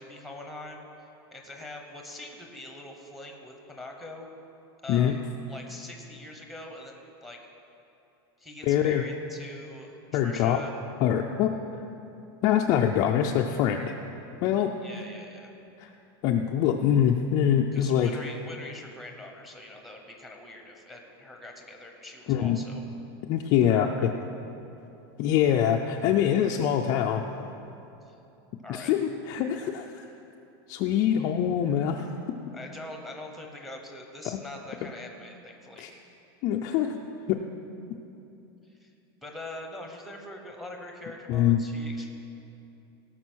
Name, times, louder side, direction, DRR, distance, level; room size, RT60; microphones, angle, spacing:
voice 1, 0.0-4.3 4.8-7.4 8.4-10.7 14.8-15.5 17.7-22.8 23.7-24.2 28.1-28.2 28.6-28.9 32.5-36.0 38.6-38.9 39.2-42.1, left 1 dB, ahead, 2 dB, 0.8 m, -43 dB
voice 2, 8.7-9.0 10.1-10.6 11.0-11.6 12.4-13.9 14.4-14.8 15.8-15.9 16.2-18.1 22.3-22.6 23.2-24.1 25.2-27.2 28.7-30.0 30.7-32.4 35.8-35.9 36.4-37.0 37.3-37.4 41.3-41.6, left 9 dB, 30° left, 2 dB, 0.4 m, -24 dB
17.5 x 6.2 x 6.2 m, 2.8 s
supercardioid pair, 180°, 13 cm